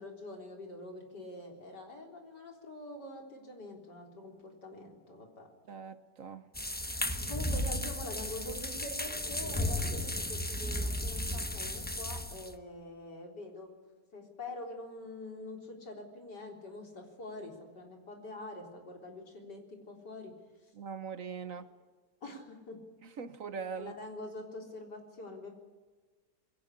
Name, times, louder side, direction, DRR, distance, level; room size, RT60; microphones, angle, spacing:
voice 1, 0.0-5.5 7.3-13.7 14.1-20.3 21.4-21.7 22.2-22.8 23.8-25.5, left 2 dB, 75° left, 4.4 m, -45 dB
voice 2, 5.7-6.4 20.8-21.7 23.2-23.9, right 6 dB, 55° right, 1.2 m, -41 dB
sound 1, 6.5-12.5, left 1 dB, 10° left, 0.7 m, -34 dB
22.0 x 17.5 x 9.9 m
omnidirectional pair, 1.8 m